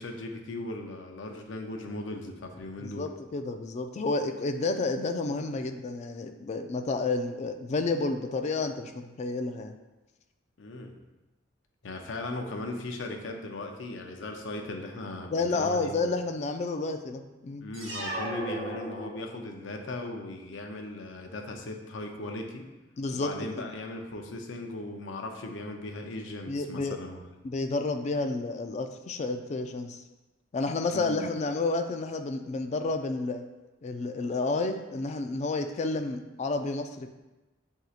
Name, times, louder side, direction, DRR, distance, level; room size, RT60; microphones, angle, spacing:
voice 1, 0.0-3.1 10.6-11.0 11.8-15.9 17.6-22.7 23.1-27.2 30.9-31.3, left 2 dB, 85° left, 3 dB, 0.6 m, -38 dB
voice 2, 2.8-9.8 15.3-17.7 23.0-23.6 26.5-27.0 27.4-30.0 30.5-33.4 33.8-37.1, left 3 dB, 35° left, 6 dB, 0.3 m, -30 dB
sound 1, 17.7-19.6, right 1 dB, 70° right, 0.9 m, -36 dB
7.5 x 2.7 x 2.4 m, 1.1 s
head